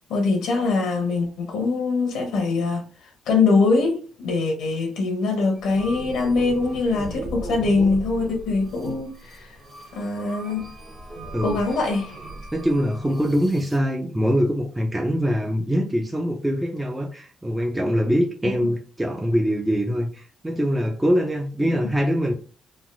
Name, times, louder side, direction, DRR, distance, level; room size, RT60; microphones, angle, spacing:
voice 1, 0.1-2.8 3.3-9.6 9.9-10.6 11.4-12.2 18.6-18.7 21.7-21.8, left 3 dB, 85° left, 0.8 m, -23 dB
sound 1, 5.6-13.8, right 1 dB, 35° right, 0.8 m, -37 dB
voice 2, 11.3-11.6 12.5-22.4, equal, 10° right, 0.4 m, -23 dB
3.3 x 2.5 x 2.5 m
cardioid pair, 90°, 0 cm